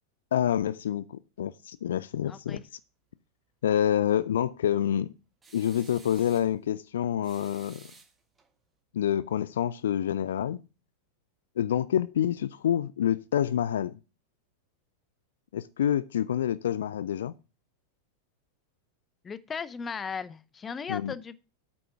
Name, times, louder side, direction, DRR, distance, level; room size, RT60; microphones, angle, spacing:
voice 1, 0.3-1.0 1.4-2.6 3.6-5.1 5.5-7.8 8.9-10.6 11.6-13.9 15.5-17.3 20.9-21.1, left 10 dB, 60° left, 0.4 m, -27 dB
voice 2, 2.3-2.6 19.2-21.4, left 6 dB, 20° left, 0.6 m, -36 dB
sound 1, 5.4-6.5 7.2-8.5, right 4 dB, 15° right, 1.6 m, -53 dB
8.7 x 6.1 x 5.7 m
figure-of-eight pair, 90°, 0 cm